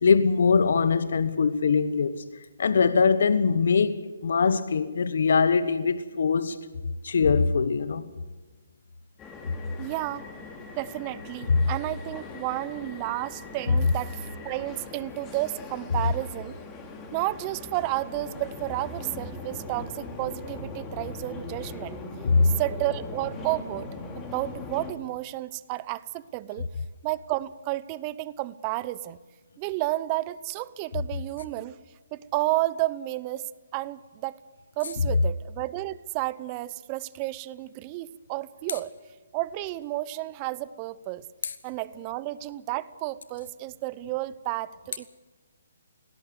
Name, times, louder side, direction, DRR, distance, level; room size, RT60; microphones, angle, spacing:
voice 1, 0.0-2.2 2.6-6.6 7.0-8.0 22.2-22.5 41.4-41.5, left 5 dB, 65° left, 1.1 m, -22 dB
sound 1, 9.2-24.9, left 3 dB, 20° left, 2.6 m, -40 dB
voice 2, 9.8-10.3 10.8-16.6 17.1-22.0 22.4-23.9 24.2-26.7 27.0-29.2 29.6-31.8 32.1-34.4 34.8-38.9 39.3-41.2 41.6-45.1, right 17 dB, 30° right, 0.7 m, -31 dB
19.5 x 17.5 x 8.1 m
hypercardioid pair, 145°, 0 cm